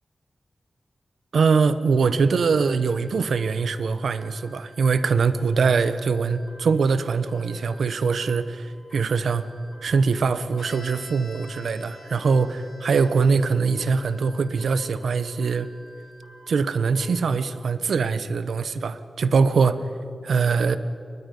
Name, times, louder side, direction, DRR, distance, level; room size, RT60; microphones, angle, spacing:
voice 1, 1.3-9.5 9.8-15.7 16.5-19.9 20.2-20.8, right 5 dB, 80° right, 13 dB, 0.9 m, -22 dB
sound 1, 2.4-17.0, right 1 dB, 60° left, 7.8 m, -52 dB
Bowed string instrument, 10.6-14.3, left 5 dB, 80° left, 2.9 m, -48 dB
28.5 x 22.5 x 5.4 m, 2.6 s
wide cardioid pair, 145°, 0 cm